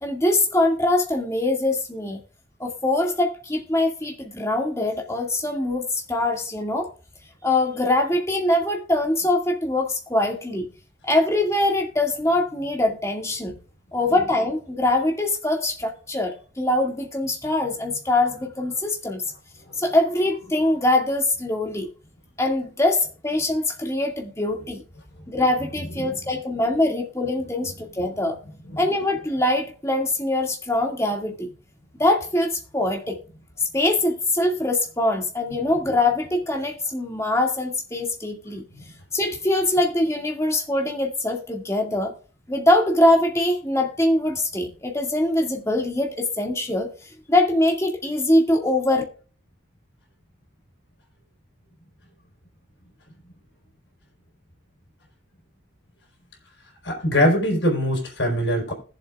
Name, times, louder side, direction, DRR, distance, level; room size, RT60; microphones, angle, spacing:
voice 1, 0.0-2.2 2.6-6.9 7.4-10.7 11.0-13.5 13.9-19.2 19.7-21.9 22.4-24.8 25.3-28.4 28.8-31.5 32.0-33.2 33.7-38.6 39.1-42.1 42.5-46.9 47.3-49.0, left 1 dB, 15° left, 2 dB, 2.0 m, -23 dB
voice 2, 56.8-58.7, equal, 75° left, 1 dB, 4.7 m, -23 dB
20.0 x 7.5 x 2.4 m, 0.38 s
head